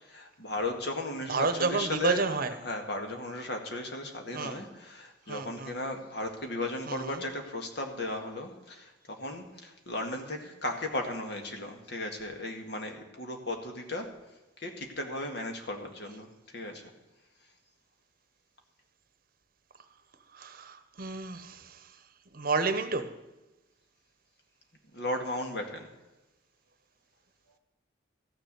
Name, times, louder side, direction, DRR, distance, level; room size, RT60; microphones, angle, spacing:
voice 1, 0.1-2.3 2.6-14.1 14.6-16.8 24.9-25.9, left 2 dB, 55° left, 4 dB, 1.9 m, -36 dB
voice 2, 1.3-2.5 4.3-4.6 5.3-5.7 6.9-7.2 20.3-21.9 22.3-23.2, right 4 dB, 45° right, 10 dB, 0.9 m, -31 dB
14.0 x 6.8 x 8.1 m, 1.1 s
head